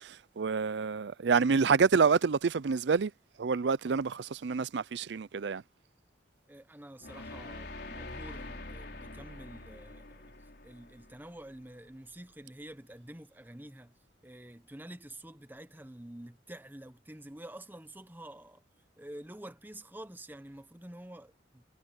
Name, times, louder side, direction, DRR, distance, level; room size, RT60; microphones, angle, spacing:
voice 1, 0.4-3.1 3.4-5.6, right 5 dB, 70° right, 0.5 m, -27 dB
voice 2, 6.5-10.3 10.6-13.9 14.2-18.6 19.0-21.6, right 1 dB, 10° right, 1.0 m, -48 dB
sound 1, 7.0-12.1, left 2 dB, 60° left, 4.7 m, -45 dB
head